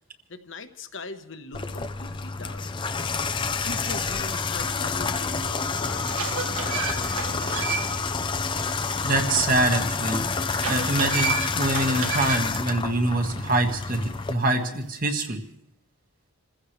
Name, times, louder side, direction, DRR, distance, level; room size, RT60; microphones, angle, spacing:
voice 1, 0.3-2.9 3.6-8.1, left 3 dB, 55° left, 8 dB, 1.2 m, -41 dB
Water tap faucet / Bathtub (filling or washing), 1.5-14.3, left 4 dB, 20° left, 0.6 m, -28 dB
sound 1, 5.7-8.1 8.5-8.6 10.5-12.6, right 5 dB, 85° right, 1.7 m, -31 dB
voice 2, 9.0-10.2 10.7-15.4, right 2 dB, 40° right, 5 dB, 1.6 m, -25 dB
27.5 x 15.5 x 3.3 m, 0.75 s
head